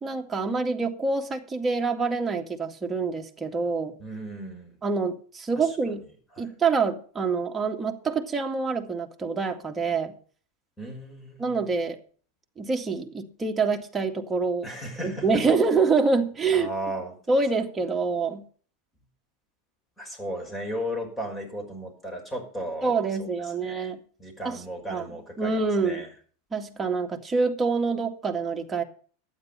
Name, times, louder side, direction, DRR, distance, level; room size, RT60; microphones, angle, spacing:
voice 1, 0.0-3.9 4.8-6.0 6.4-10.1 11.4-12.0 12.6-14.7 15.0-16.7 17.3-18.4 22.8-24.0 24.4-24.6 24.9-25.0 25.4-26.0 26.5-28.8, right 4 dB, 15° right, 2.0 m, -26 dB
voice 2, 4.0-4.8 5.6-5.9 6.4-6.5 10.8-11.6 14.6-15.3 16.5-17.2 20.0-22.9 23.4-23.9 24.2-26.1, equal, 15° left, 5.6 m, -35 dB
12.0 x 9.5 x 5.4 m
hypercardioid pair, 95°, 0 cm